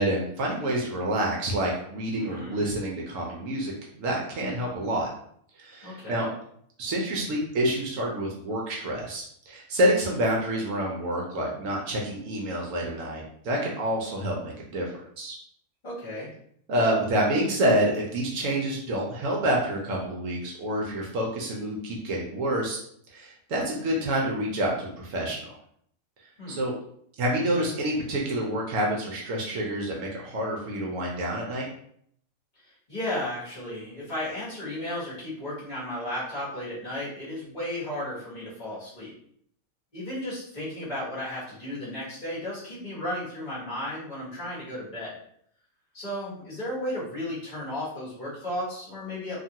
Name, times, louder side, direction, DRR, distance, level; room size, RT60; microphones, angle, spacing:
voice 1, 0.0-3.7 4.0-5.1 5.6-6.3 6.8-14.9 15.2-15.3 16.7-22.8 23.1-25.5 26.5-26.7 27.2-31.7, right 1 dB, 70° right, -1 dB, 0.9 m, -28 dB
voice 2, 2.2-2.6 5.8-6.3 15.8-16.3 26.4-26.6 32.6-39.1 39.9-45.2 45.9-49.4, left 1 dB, 35° left, -9 dB, 1.2 m, -34 dB
2.8 x 2.4 x 2.7 m, 0.67 s
omnidirectional pair, 1.5 m